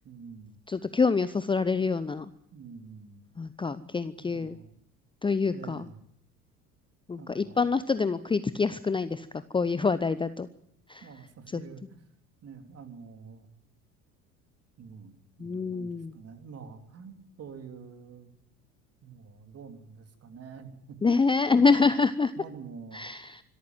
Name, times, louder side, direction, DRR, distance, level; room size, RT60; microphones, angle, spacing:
voice 1, 0.0-0.6 2.5-3.2 4.2-4.8 5.5-6.0 7.2-7.7 11.0-12.0 12.4-13.5 14.8-18.3 19.0-21.8 22.4-23.1, right 6 dB, 35° right, 6 dB, 3.4 m, -46 dB
voice 2, 0.7-2.3 3.4-4.6 5.2-5.9 7.1-9.3 9.5-10.5 10.9-11.0 11.5-11.6 15.4-16.2 21.0-22.3 22.9-23.4, left 4 dB, 10° left, 14 dB, 0.8 m, -26 dB
25.5 x 13.5 x 9.2 m, 0.73 s
figure-of-eight pair, 70°, 43 cm